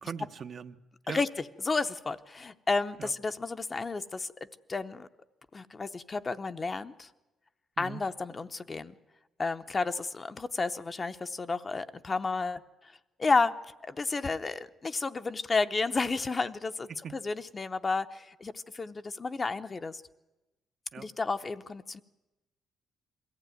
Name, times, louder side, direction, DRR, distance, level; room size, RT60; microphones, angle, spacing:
voice 1, 0.0-1.3 3.0-3.1 7.8-8.0 16.9-17.1 20.9-21.1, right 7 dB, 50° right, 9 dB, 0.8 m, -41 dB
voice 2, 1.6-4.3 4.7-5.1 5.5-7.1 7.8-8.9 9.4-12.6 13.2-13.5 13.8-20.0 21.0-22.0, left 3 dB, 30° left, 10 dB, 0.7 m, -31 dB
21.5 x 15.0 x 9.2 m, 1.1 s
cardioid pair, 90°, 0 cm